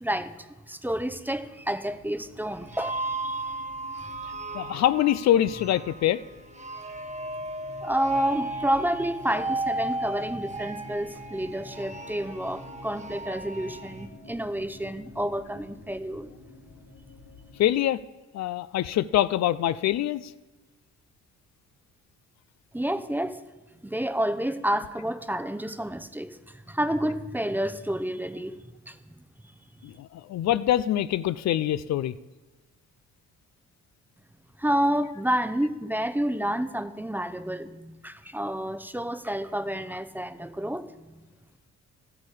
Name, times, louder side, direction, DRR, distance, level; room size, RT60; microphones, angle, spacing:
voice 1, 0.0-0.3 0.7-3.5 7.8-16.3 22.7-23.4 23.8-28.6 28.9-29.0 34.6-40.9, right 1 dB, 5° right, 10 dB, 0.7 m, -29 dB
sound 1, 1.8-17.7, left 3 dB, 80° left, 3.9 m, -50 dB
sound 2, 2.5-14.0, right 2 dB, 25° right, 1.1 m, -35 dB
voice 2, 4.5-6.2 17.6-18.0 18.3-20.3 29.8-32.1, left 12 dB, 60° left, 15 dB, 0.5 m, -24 dB
13.0 x 8.6 x 4.9 m, 1.2 s
cardioid pair, 90°, 30 cm